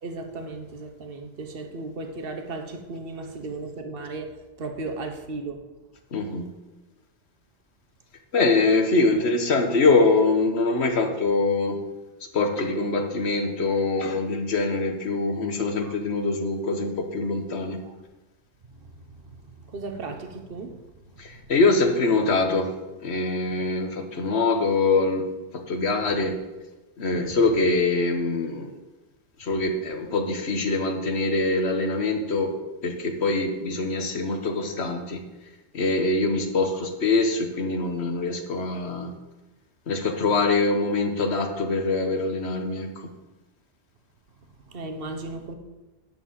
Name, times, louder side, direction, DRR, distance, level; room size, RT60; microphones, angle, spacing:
voice 1, 0.0-4.3 4.6-5.6 15.8-15.9 17.8-17.9 18.7-20.8 27.3-27.4 44.7-45.5, right 3 dB, 55° right, 5 dB, 1.3 m, -36 dB
voice 2, 6.1-6.5 8.3-11.8 12.3-17.8 21.2-22.7 23.0-26.4 27.0-28.7 29.4-32.5 32.8-35.2 35.7-39.1 39.9-43.1, left 3 dB, 65° left, 5 dB, 1.5 m, -24 dB
10.5 x 4.5 x 7.6 m, 1.1 s
omnidirectional pair, 1.2 m